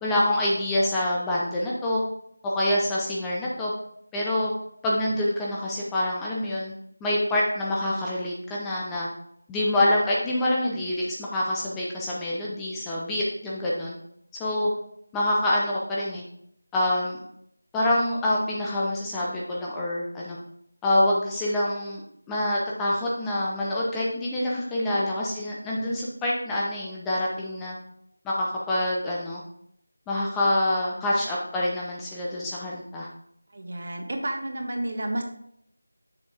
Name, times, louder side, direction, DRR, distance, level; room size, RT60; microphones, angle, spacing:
voice 1, 0.0-2.0 2.4-3.7 4.1-4.5 4.8-6.7 7.0-9.1 9.5-14.0 14.4-14.7 15.1-16.2 16.7-17.2 17.7-20.4 20.8-22.0 22.3-27.8 28.2-29.4 30.1-33.1, left 1 dB, 5° left, -5 dB, 0.7 m, -26 dB
voice 2, 33.5-35.2, right 1 dB, 50° right, 3 dB, 1.3 m, -31 dB
6.8 x 4.5 x 5.0 m, 0.70 s
figure-of-eight pair, 170°, 0 cm